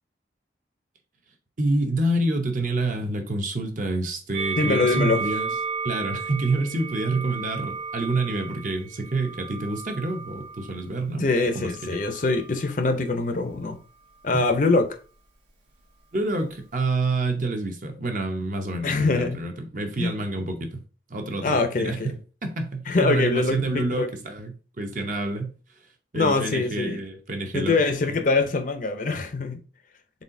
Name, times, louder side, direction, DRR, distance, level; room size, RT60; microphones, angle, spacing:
voice 1, 1.6-5.5 5.8-11.3 11.5-12.0 14.3-14.5 16.1-20.8 21.1-25.5 26.1-27.8 28.1-28.2, right 2 dB, 45° right, 0.7 m, -28 dB
Musical instrument, 4.3-10.7 11.6-12.6, right 5 dB, 80° right, 1.2 m, -33 dB
voice 2, 4.6-5.2 11.2-13.8 14.2-14.9 18.8-19.4 20.0-20.1 21.4-22.1 22.9-24.1 26.1-27.0 27.5-29.6, left 3 dB, 45° left, 0.5 m, -23 dB
4.1 x 3.7 x 2.6 m
head